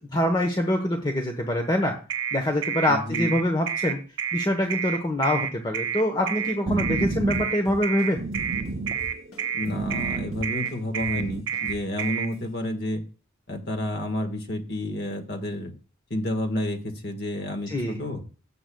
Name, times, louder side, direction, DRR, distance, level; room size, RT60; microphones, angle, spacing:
voice 1, 0.1-2.0 2.3-4.0 4.3-8.2 17.7-18.0, left 1 dB, 20° left, 3 dB, 1.1 m, -25 dB
sound 1, 2.1-12.3, right 8 dB, 75° right, 1.7 m, -29 dB
voice 2, 2.9-3.4 6.7-7.0 9.5-13.0 13.5-15.7 16.1-18.2, left 1 dB, 55° left, 5 dB, 1.6 m, -30 dB
sound 2, 6.2-11.4, right 2 dB, 50° right, 0.7 m, -32 dB
sound 3, 7.3-9.7 10.0-12.3, right 2 dB, 85° left, 2.7 m, -42 dB
17.0 x 7.9 x 2.3 m, 0.37 s
head